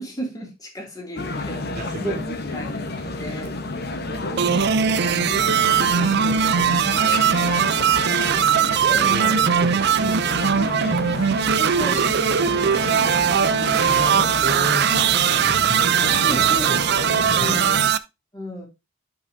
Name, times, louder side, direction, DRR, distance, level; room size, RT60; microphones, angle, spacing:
voice 1, 0.0-1.6 2.0-2.2 2.5-3.5 7.5-8.4 11.6-12.9 16.2-17.7 18.3-18.7, equal, 20° left, 2.6 m, -34 dB
sound 1, 1.2-17.9, left 2 dB, 55° left, 1.1 m, -30 dB
voice 2, 1.7-2.2 6.2-6.5 8.8-10.9 13.4-13.6 13.9-16.5 17.1-17.6, right 1 dB, 45° right, 1.8 m, -33 dB
sound 2, 4.4-18.0, right 8 dB, 60° right, 0.5 m, -20 dB
11.5 x 5.5 x 2.7 m
head